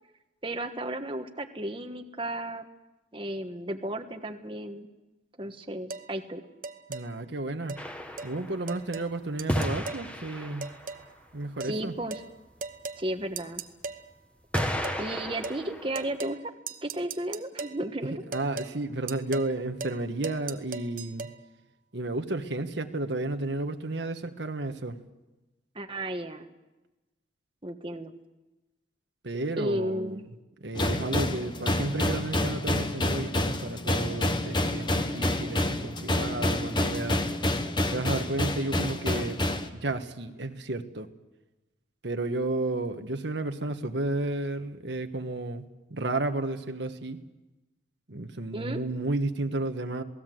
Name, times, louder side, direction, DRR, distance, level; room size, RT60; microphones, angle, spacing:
voice 1, 0.4-2.7 3.1-4.9 5.4-6.4 11.6-12.2 13.0-13.6 15.0-16.5 16.8-18.2 25.7-26.5 27.6-28.1 29.6-30.2 48.5-48.8, right 1 dB, 30° right, 5 dB, 1.3 m, -33 dB
sound 1, 5.9-6.1 6.6-7.1 7.7-7.8 8.2-8.3 8.7-9.1 9.4-10.1 10.6-11.1 11.6-11.8 12.1-12.3 12.6-13.0 13.4-14.0 14.6-15.0 15.4-15.6 15.9-16.4 16.7-17.8 18.3-18.7 19.1-19.5 19.8-20.0 20.2-21.3, right 4 dB, 45° right, 1.0 m, -38 dB
voice 2, 6.9-7.8 8.2-10.7 11.3-12.0 18.3-21.3 21.9-25.0 29.2-30.2 30.6-37.2 37.9-39.4 39.7-41.1 42.0-47.2 48.1-50.0, right 2 dB, 75° right, 6 dB, 1.4 m, -32 dB
sound 2, 7.8-8.9 9.5-11.0 13.3-13.4 14.5-16.2, equal, 5° left, 1.6 m, -33 dB
sound 3, 30.8-39.7, left 1 dB, 25° left, 1.3 m, -28 dB
27.5 x 18.5 x 7.8 m, 1.1 s
head